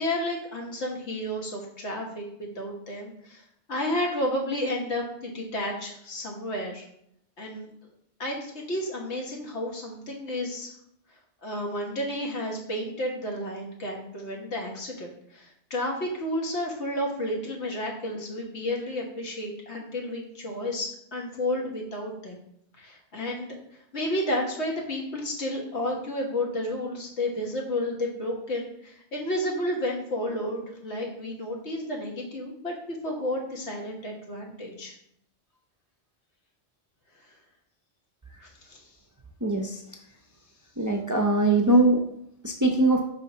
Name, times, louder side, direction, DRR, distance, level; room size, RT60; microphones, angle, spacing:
voice 1, 0.0-6.9 7.4-7.7 8.2-10.7 11.4-22.4 22.8-23.6 23.9-35.0 37.2-37.3 38.4-38.9, left 1 dB, 85° left, -1 dB, 1.7 m, -31 dB
voice 2, 39.4-39.8 40.8-42.0 42.4-43.0, right 2 dB, 25° right, 2 dB, 0.4 m, -21 dB
5.3 x 3.5 x 5.5 m, 0.73 s
omnidirectional pair, 1.1 m